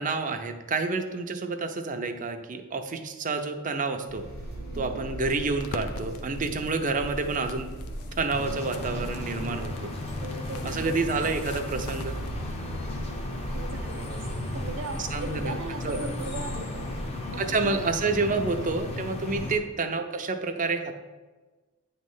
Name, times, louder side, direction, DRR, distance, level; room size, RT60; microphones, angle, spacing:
voice 1, 0.0-4.2 4.7-7.7 8.2-9.9 10.6-12.2 15.0-15.6 15.8-16.0 17.4-21.0, right 3 dB, 35° right, 7 dB, 0.6 m, -29 dB
sound 1, 4.1-17.0, right 1 dB, 50° left, 1.5 m, -38 dB
voice 2, 4.7-5.0 6.5-6.7 10.2-11.3 13.5-17.8 19.4-19.5, right 2 dB, 60° right, 5 dB, 0.9 m, -39 dB
sound 2, 5.6-12.3, left 4 dB, 90° left, 0.6 m, -45 dB
sound 3, 8.3-19.6, left 2 dB, 30° left, 0.8 m, -35 dB
9.0 x 3.2 x 5.5 m, 1.3 s
head